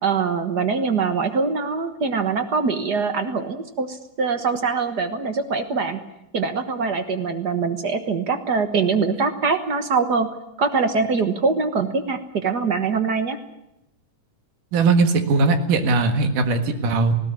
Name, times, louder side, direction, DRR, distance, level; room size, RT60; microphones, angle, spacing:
voice 1, 0.0-6.0 6.3-10.3 10.6-13.4, right 4 dB, 55° right, 8 dB, 1.2 m, -23 dB
voice 2, 14.7-17.1, right 3 dB, 80° right, 7 dB, 3.3 m, -19 dB
19.5 x 17.0 x 10.0 m, 0.85 s
omnidirectional pair, 3.7 m